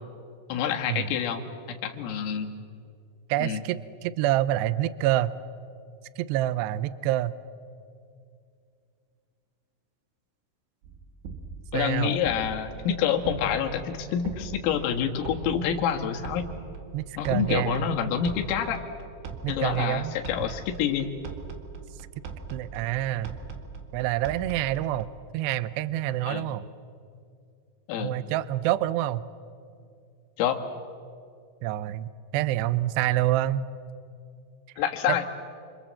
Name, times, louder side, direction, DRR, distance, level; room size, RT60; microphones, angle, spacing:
voice 1, 0.5-2.5 3.4-3.6 11.7-16.5 17.2-18.8 19.5-21.1 26.3-26.4 27.9-28.2 30.4-30.6 34.8-35.3, left 8 dB, 85° left, 4 dB, 4.4 m, -27 dB
voice 2, 3.3-5.3 6.2-7.3 11.7-12.2 16.9-17.9 19.4-20.1 22.5-23.4 23.9-25.1 25.3-26.7 28.0-29.2 31.6-33.6 35.1-35.2, right 14 dB, 90° right, 16 dB, 2.4 m, -27 dB
sound 1, 10.8-25.2, right 5 dB, 65° right, 3.5 m, -41 dB
29.5 x 26.5 x 7.6 m, 2.4 s
omnidirectional pair, 5.8 m